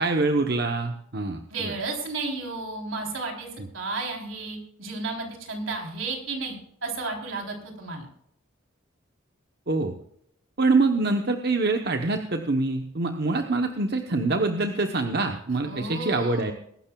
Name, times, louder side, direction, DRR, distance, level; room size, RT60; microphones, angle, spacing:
voice 1, 0.0-1.7 9.7-9.9 10.6-16.5, right 3 dB, 50° right, 5 dB, 0.9 m, -25 dB
voice 2, 1.5-3.5 3.7-8.1 15.7-16.5, right 3 dB, 70° right, 1 dB, 3.6 m, -33 dB
22.0 x 11.5 x 2.3 m, 0.71 s
head